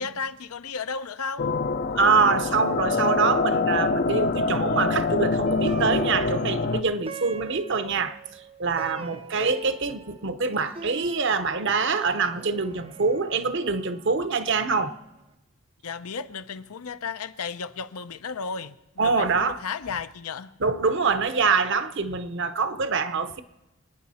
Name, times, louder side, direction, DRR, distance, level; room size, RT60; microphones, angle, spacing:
voice 1, 0.0-1.5 9.1-9.2 15.8-20.5 22.1-22.2, left 5 dB, 85° left, 0.7 m, -34 dB
sound 1, 1.4-6.8, left 3 dB, 40° left, 0.4 m, -25 dB
voice 2, 1.9-8.2 8.6-14.9 19.0-19.6 20.6-23.4, right 4 dB, 55° right, 0.8 m, -25 dB
Plucked string instrument, 5.5-14.9, right 3 dB, 25° right, 0.5 m, -42 dB
27.5 x 9.6 x 4.2 m
head